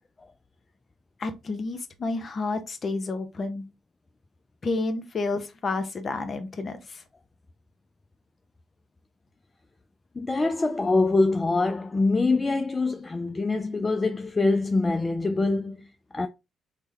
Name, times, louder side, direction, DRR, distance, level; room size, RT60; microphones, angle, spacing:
voice 1, 1.2-3.7 4.6-7.0, left 3 dB, 45° left, 0.7 m, -30 dB
voice 2, 10.2-15.9 16.1-16.3, left 3 dB, 25° left, 0.3 m, -24 dB
3.3 x 2.1 x 3.2 m
hypercardioid pair, 45°, 0 cm